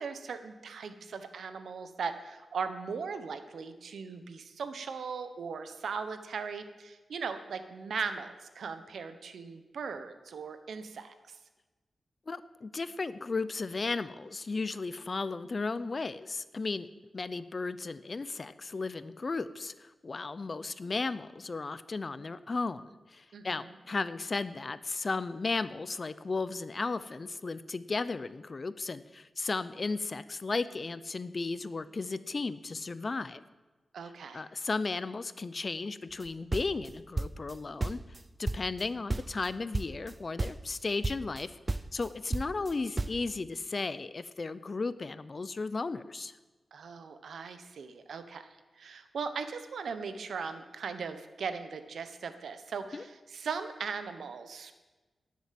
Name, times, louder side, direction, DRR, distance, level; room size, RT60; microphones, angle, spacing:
voice 1, 0.0-11.4 23.3-23.8 33.9-34.4 46.7-54.7, right 5 dB, 85° right, 10 dB, 1.2 m, -39 dB
voice 2, 12.3-16.9 17.1-33.4 34.3-38.0 38.4-41.5 41.9-46.3 52.9-53.0, left 3 dB, 40° left, 14 dB, 0.6 m, -35 dB
sound 1, 36.2-37.6 37.8-38.8 39.1-39.5 39.7-40.1 40.4-40.8 41.0-41.4 41.7-43.2, right 2 dB, 30° right, 0.5 m, -33 dB
17.5 x 7.4 x 7.6 m, 1.2 s
wide cardioid pair, 110°, 0 cm